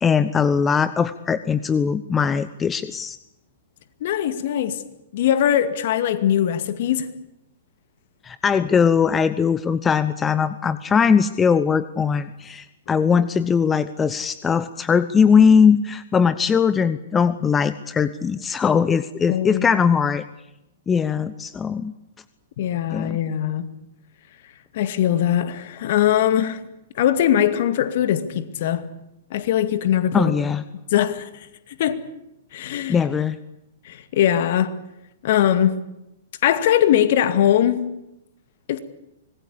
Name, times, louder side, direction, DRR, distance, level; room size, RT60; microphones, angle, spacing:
voice 1, 0.0-3.2 8.2-20.2 20.9-21.9 22.9-23.2 30.1-30.6 32.9-33.4, left 6 dB, 15° left, 0.8 m, -20 dB
voice 2, 4.0-4.8 5.1-7.1 19.3-19.7 22.6-23.7 24.7-26.6 27.0-28.9 29.3-30.3 30.9-31.3 31.8-32.0 32.5-33.0 33.9-34.7 35.2-35.8 36.4-37.9 38.7-38.8, left 10 dB, 55° left, 2.2 m, -21 dB
25.5 x 20.0 x 8.6 m
figure-of-eight pair, 110°, 0 cm